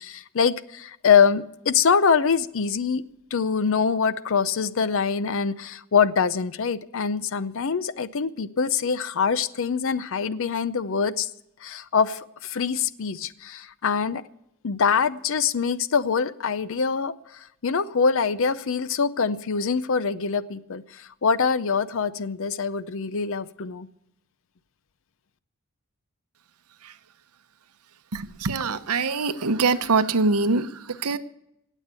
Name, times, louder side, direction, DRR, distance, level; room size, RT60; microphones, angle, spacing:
voice 1, 0.0-3.0 3.3-11.3 11.6-14.2 14.6-23.9, left 6 dB, 60° left, 0.6 m, -24 dB
voice 2, 28.1-31.2, right 4 dB, 85° right, 0.9 m, -24 dB
18.5 x 7.3 x 8.1 m
head